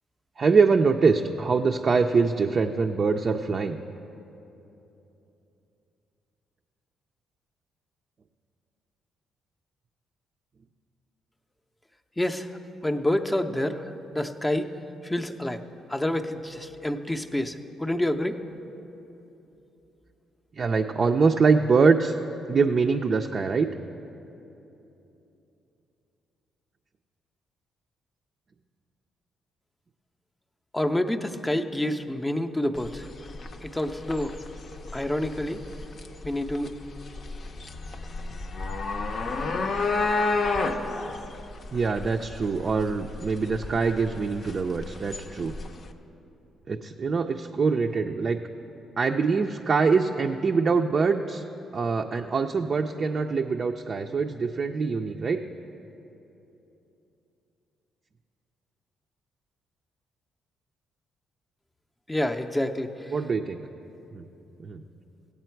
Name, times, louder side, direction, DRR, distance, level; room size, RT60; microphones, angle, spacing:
voice 1, 0.4-3.8 20.6-22.1 22.5-23.7 41.7-45.5 46.7-48.4 49.0-51.4 51.7-55.4 63.1-63.6 64.1-64.3 64.6-64.8, right 4 dB, 45° right, 3 dB, 0.4 m, -24 dB
voice 2, 12.2-12.5 12.8-14.7 15.0-15.6 15.9-18.3 30.7-33.1 33.6-34.4 34.9-35.6 36.2-36.7 62.1-63.1, left 1 dB, 10° left, 6 dB, 0.6 m, -28 dB
sound 1, 32.8-45.9, left 3 dB, 50° left, 0.6 m, -31 dB
15.5 x 8.4 x 4.5 m, 3.0 s
cardioid pair, 90°, 0 cm